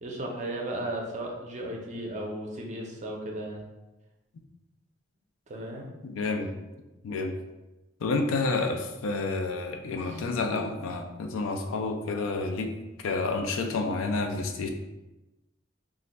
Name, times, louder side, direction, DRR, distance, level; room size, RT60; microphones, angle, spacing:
voice 1, 0.0-3.6 5.5-5.9 10.0-10.7, right 1 dB, 35° right, 0 dB, 0.4 m, -36 dB
voice 2, 6.0-6.5 7.0-7.3 8.0-12.7 13.0-14.7, left 3 dB, 85° left, 4 dB, 0.4 m, -29 dB
2.4 x 2.2 x 3.9 m, 1.0 s
head